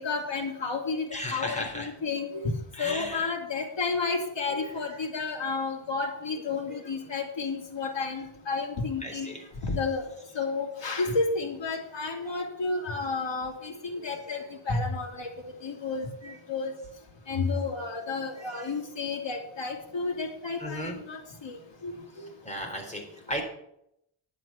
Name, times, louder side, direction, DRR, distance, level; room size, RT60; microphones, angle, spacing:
voice 1, 0.0-2.5 2.8-9.3 9.6-10.0 10.3-16.7 17.3-22.0, left 4 dB, 60° left, 1 dB, 3.0 m, -31 dB
voice 2, 1.1-1.9 2.7-3.3 9.0-9.5 16.2-16.3 18.4-18.5 20.6-21.0 22.4-23.4, equal, 15° left, 2 dB, 3.6 m, -35 dB
11.0 x 7.5 x 7.1 m, 0.76 s
wide cardioid pair, 115°, 48 cm